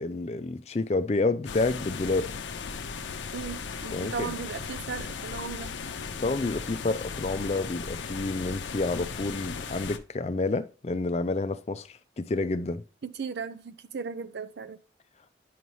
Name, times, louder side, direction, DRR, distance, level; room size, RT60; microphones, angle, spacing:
voice 1, 0.0-2.3 3.9-4.3 6.2-12.8, left 3 dB, 35° left, 0.4 m, -29 dB
sound 1, 1.4-10.0, left 5 dB, 85° left, 0.6 m, -37 dB
voice 2, 3.3-5.7 13.0-14.8, right 5 dB, 70° right, 0.5 m, -36 dB
9.2 x 5.5 x 3.1 m
head